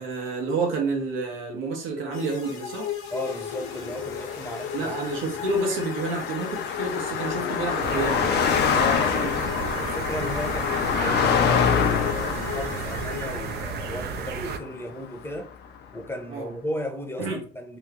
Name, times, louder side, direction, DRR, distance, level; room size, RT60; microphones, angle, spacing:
voice 1, 0.0-2.9 4.7-9.3 16.3-16.5 17.2-17.4, right 3 dB, 90° right, 1.1 m, -29 dB
sound 1, 2.1-14.0, left 8 dB, 80° left, 0.8 m, -36 dB
voice 2, 3.1-5.0 5.3-5.4 8.7-9.4 9.8-15.5 15.9-17.8, left 1 dB, 10° left, 0.7 m, -35 dB
Car passing by, 3.8-15.4, left 7 dB, 55° left, 0.5 m, -27 dB
sound 2, 7.8-14.6, right 7 dB, 55° right, 0.4 m, -33 dB
3.0 x 2.3 x 3.5 m
cardioid pair, 105°, 20 cm